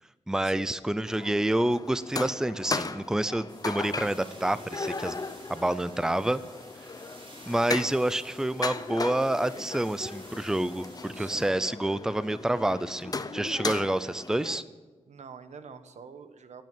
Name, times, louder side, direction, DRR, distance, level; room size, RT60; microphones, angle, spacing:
voice 1, 0.3-5.2 5.5-6.4 7.5-14.6, right 1 dB, 5° right, 15 dB, 0.5 m, -28 dB
sound 1, 1.1-14.6, left 3 dB, 35° left, 0.8 m, -37 dB
sound 2, 3.5-11.5, right 1 dB, 45° right, 6.9 m, -52 dB
voice 2, 11.1-11.6 15.0-16.6, right 6 dB, 85° right, 10 dB, 1.3 m, -46 dB
16.0 x 9.3 x 9.2 m, 1.3 s
wide cardioid pair, 115°, 12 cm